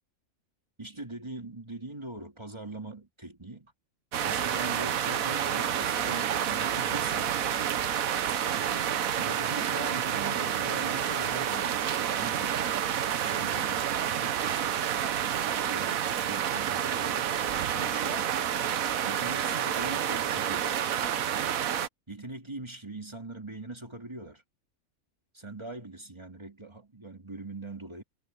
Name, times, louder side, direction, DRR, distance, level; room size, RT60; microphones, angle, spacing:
voice 1, 0.8-3.7 4.2-7.4 8.6-12.8 13.3-14.4 15.4-17.3 17.7-18.3 19.0-21.3 22.1-24.4 25.3-28.0, right 2 dB, 20° right, 2.8 m, -41 dB
sound 1, 4.1-21.9, right 9 dB, 75° right, 1.3 m, -29 dB
omnidirectional pair, 1.5 m